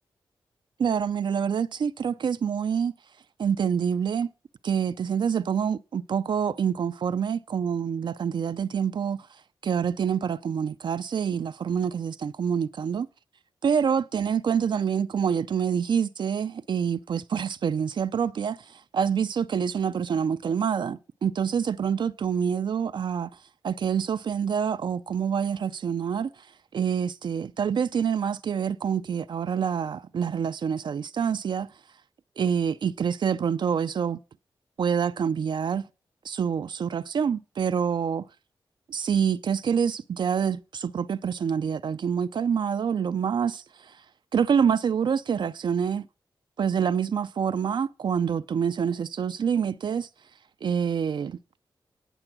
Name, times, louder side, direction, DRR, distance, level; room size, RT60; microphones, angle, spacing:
voice 1, 0.8-2.9 3.4-4.3 4.6-9.3 9.6-13.1 13.6-23.3 23.6-26.3 26.7-31.7 32.4-34.2 34.8-35.9 36.2-38.3 38.9-44.0 44.3-46.1 46.6-50.1 50.6-51.4, right 7 dB, 65° right, 0.4 m, -26 dB
9.9 x 6.8 x 6.0 m
cardioid pair, 65°, 8 cm